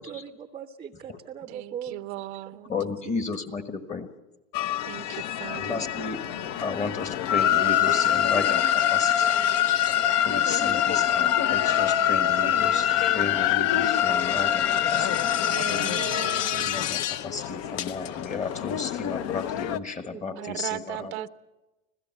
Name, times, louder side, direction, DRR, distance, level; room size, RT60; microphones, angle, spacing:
voice 1, 0.0-2.1 3.1-3.2 5.6-5.9 20.1-20.6 21.0-21.3, right 8 dB, 15° right, 8 dB, 0.6 m, -40 dB
voice 2, 1.5-2.7 4.9-6.7 15.5-16.9 20.4-21.3, right 16 dB, 85° right, 14 dB, 0.8 m, -38 dB
voice 3, 2.7-4.1 5.0-5.3 5.5-6.2 6.6-9.4 10.2-16.0 16.5-21.1, left 4 dB, 20° left, 9 dB, 1.3 m, -34 dB
sound 1, 4.5-19.8, left 10 dB, 50° left, 0.8 m, -25 dB
26.0 x 16.5 x 7.0 m, 1.1 s
supercardioid pair, 140°, 32 cm